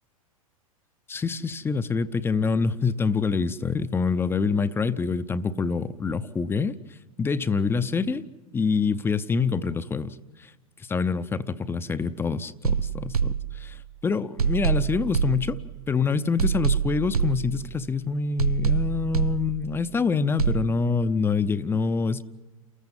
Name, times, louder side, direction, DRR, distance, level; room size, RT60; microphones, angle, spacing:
voice 1, 1.1-6.7 7.2-8.3 8.5-10.5 10.9-15.6 15.9-22.2, left 5 dB, 10° left, 15 dB, 0.7 m, -26 dB
sound 1, 12.6-13.9 14.4-15.9 16.4-17.9 18.4-19.9 20.4-20.7, right 7 dB, 80° right, 0.6 m, -26 dB
29.0 x 14.5 x 7.5 m, 1.3 s
figure-of-eight pair, 100°, 19 cm